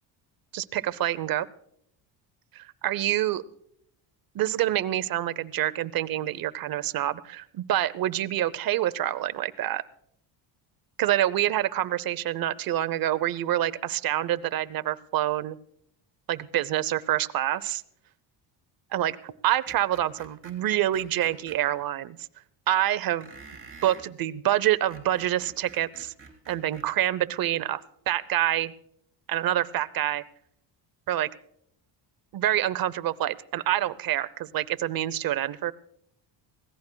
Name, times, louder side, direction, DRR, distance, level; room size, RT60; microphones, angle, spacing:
voice 1, 0.5-1.5 2.5-3.4 4.3-9.8 11.0-15.6 16.3-17.8 18.9-22.2 22.7-23.3 23.8-26.1 26.5-27.8 28.1-28.7 29.3-30.2 31.1-31.3 32.3-35.7, right 13 dB, 50° right, 15 dB, 0.7 m, -27 dB
Screech, 19.7-21.6 23.2-24.1 24.7-26.9, right 4 dB, 25° right, 3.3 m, -48 dB
25.0 x 17.0 x 2.2 m, 0.72 s
cardioid pair, 115°, 46 cm